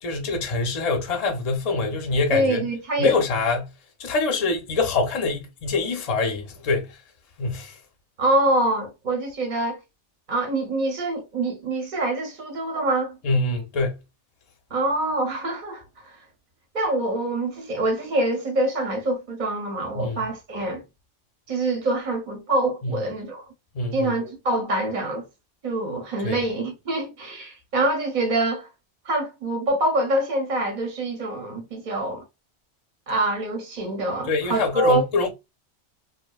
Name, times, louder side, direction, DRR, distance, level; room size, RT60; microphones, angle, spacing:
voice 1, 0.0-2.7 3.0-3.7 4.0-7.0 7.4-7.8 13.2-14.0 19.9-20.2 22.8-23.0 23.7-24.1 26.2-26.4 34.3-35.3, left 3 dB, 45° left, 0.6 m, -25 dB
voice 2, 2.3-3.2 8.2-9.8 10.3-13.2 14.7-16.1 16.7-20.8 21.5-23.4 23.9-25.2 25.6-28.7 29.1-32.2 33.1-35.0, right 1 dB, 50° right, 0.8 m, -25 dB
2.7 x 2.1 x 2.2 m
omnidirectional pair, 1.2 m